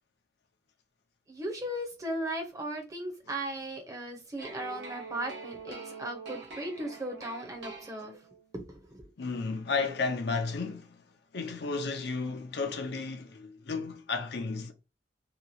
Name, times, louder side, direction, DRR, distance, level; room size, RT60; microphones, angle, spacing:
voice 1, 1.3-8.2 8.5-8.8, right 1 dB, 15° right, 0.7 m, -37 dB
sound 1, 4.4-8.5, right 3 dB, 70° right, 1.1 m, -44 dB
voice 2, 9.2-11.0 11.3-14.7, left 4 dB, 60° left, 0.5 m, -33 dB
2.9 x 2.3 x 2.7 m
head